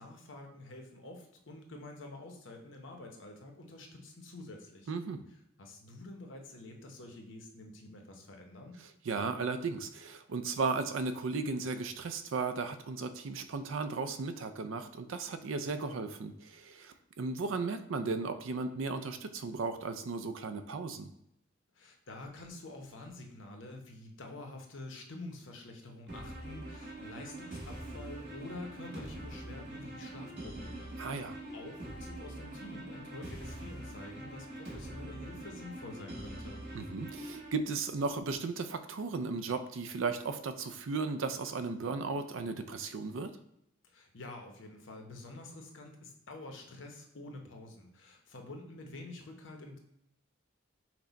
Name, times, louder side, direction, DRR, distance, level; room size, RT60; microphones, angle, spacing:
voice 1, 0.0-4.9 5.6-8.8 21.7-36.6 43.8-49.8, left 2 dB, 70° left, 3 dB, 0.8 m, -48 dB
voice 2, 4.9-5.2 9.0-21.1 31.0-31.4 36.7-43.3, right 4 dB, 80° right, 10 dB, 0.4 m, -35 dB
sound 1, 26.1-37.5, right 1 dB, 55° right, 1.4 m, -44 dB
5.9 x 2.2 x 3.9 m, 0.80 s
head